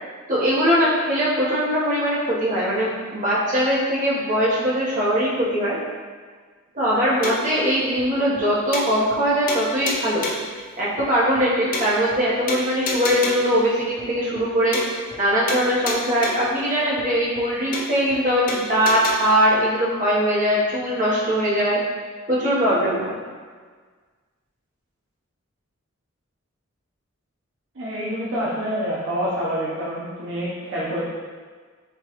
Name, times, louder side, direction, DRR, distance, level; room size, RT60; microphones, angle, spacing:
voice 1, 0.3-5.8 6.7-10.3 10.5-21.8 22.3-23.2, equal, 35° right, -8 dB, 1.0 m, -21 dB
sound 1, 7.2-7.6 8.0-8.1 8.3-8.4 8.7-9.2 9.5-10.5 11.0-11.1 11.3-11.4 11.7-12.2 12.5-13.6 14.0-14.1 14.3-14.5 14.7-15.2 15.5-16.5 17.0-17.1 17.3-17.4 17.7-18.2 18.5-19.1, left 2 dB, 40° left, 0.5 m, -30 dB
voice 2, 27.7-31.0, equal, 60° right, -7 dB, 0.7 m, -27 dB
4.4 x 3.1 x 2.9 m, 1.5 s
head